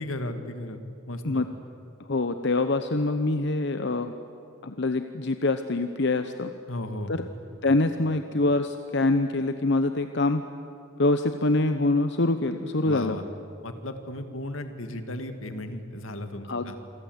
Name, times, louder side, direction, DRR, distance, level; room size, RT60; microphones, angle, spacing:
voice 1, 0.0-1.4 6.7-7.3 12.8-13.2 13.6-16.8, left 1 dB, 85° left, 7 dB, 2.3 m, -35 dB
voice 2, 2.1-4.1 4.6-6.5 7.1-7.2 7.6-10.4 11.0-13.2 16.5-16.8, left 2 dB, 60° left, 9 dB, 0.9 m, -25 dB
27.0 x 24.5 x 8.1 m, 2.5 s
head